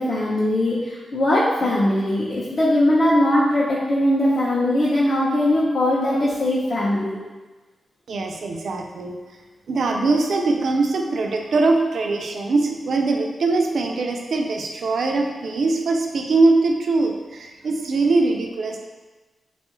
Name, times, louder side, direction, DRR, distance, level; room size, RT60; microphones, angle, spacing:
voice 1, 0.0-7.2, left 1 dB, 45° left, -7 dB, 0.6 m, -20 dB
voice 2, 8.1-9.2 9.7-18.8, right 3 dB, 65° right, 3 dB, 0.4 m, -22 dB
3.5 x 2.3 x 3.0 m, 1.2 s
wide cardioid pair, 115°, 0 cm